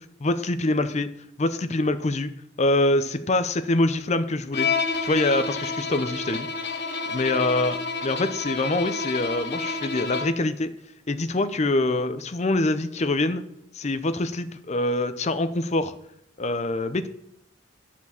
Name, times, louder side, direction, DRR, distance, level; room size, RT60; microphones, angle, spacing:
voice 1, 0.2-1.1 1.4-2.3 2.6-4.7 5.0-6.5 7.1-7.8 8.0-10.7 11.1-13.4 13.7-15.9 16.4-17.1, left 2 dB, 35° left, 11 dB, 0.6 m, -24 dB
Bowed string instrument, 4.5-10.5, left 4 dB, 60° left, 0.9 m, -29 dB
10.5 x 4.5 x 7.1 m, 0.74 s
head